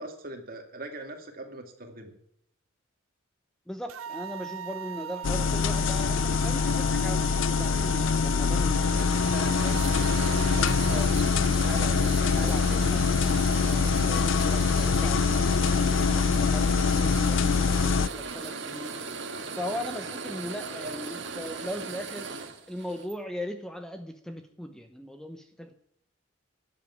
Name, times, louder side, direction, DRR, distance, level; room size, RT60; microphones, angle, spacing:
voice 1, 0.0-2.1 20.8-20.9, right 1 dB, 45° right, 4 dB, 2.4 m, -41 dB
voice 2, 3.7-10.2 10.6-16.1 16.4-19.0 19.5-22.3 22.7-25.8, equal, 5° left, 7 dB, 0.8 m, -39 dB
sound 1, 3.9-11.1, right 8 dB, 90° right, 0.5 m, -39 dB
sound 2, 5.2-18.1, left 5 dB, 70° left, 0.5 m, -24 dB
sound 3, 7.6-23.1, right 4 dB, 60° right, 1.7 m, -37 dB
12.5 x 8.0 x 9.6 m, 0.69 s
head